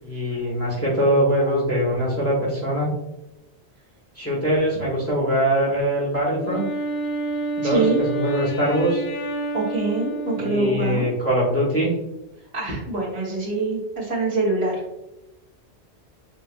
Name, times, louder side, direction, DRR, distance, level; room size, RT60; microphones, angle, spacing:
voice 1, 0.0-2.9 4.1-6.7 7.6-9.0 10.4-11.9, equal, 15° left, -4 dB, 1.4 m, -22 dB
Wind instrument woodwind instrument, 6.4-11.1, right 2 dB, 55° left, 0.7 m, -29 dB
voice 2, 9.5-11.1 12.5-14.8, right 2 dB, 70° right, -6 dB, 1.7 m, -24 dB
6.3 x 2.8 x 2.5 m, 0.93 s
omnidirectional pair, 1.1 m